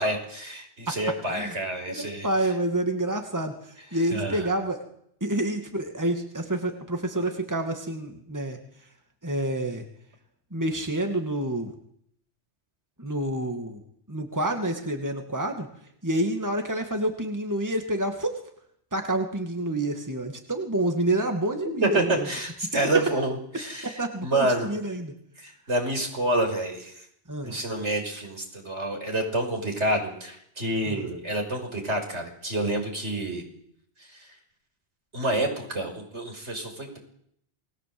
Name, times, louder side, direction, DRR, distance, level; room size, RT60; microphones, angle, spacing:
voice 1, 0.0-2.3 3.9-4.5 21.6-24.7 25.4-27.0 27.4-33.5 34.1-34.3 35.1-37.0, right 1 dB, 75° right, 4 dB, 6.0 m, -28 dB
voice 2, 1.9-3.5 3.9-4.8 5.2-8.6 9.2-9.8 10.5-11.7 13.0-13.8 14.1-15.7 16.0-18.4 18.9-22.1 23.8-25.1 27.3-27.6 30.9-31.0, right 1 dB, 15° right, 4 dB, 2.4 m, -28 dB
28.5 x 21.0 x 7.9 m, 0.71 s
omnidirectional pair, 1.2 m